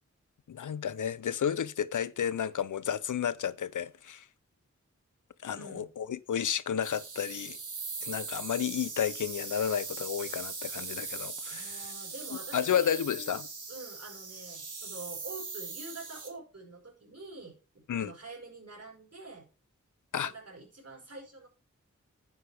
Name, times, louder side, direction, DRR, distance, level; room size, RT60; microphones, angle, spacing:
voice 1, 0.5-4.3 5.4-7.6 8.0-11.8 12.5-13.5 17.9-18.1 20.1-20.3, left 8 dB, 80° left, 0.6 m, -32 dB
voice 2, 5.5-5.9 11.5-13.0 13.7-19.5 20.2-21.5, right 3 dB, 55° right, 5.1 m, -46 dB
sound 1, 6.8-16.3, right 4 dB, 85° right, 2.1 m, -40 dB
10.5 x 9.1 x 3.4 m
cardioid pair, 40°, 30 cm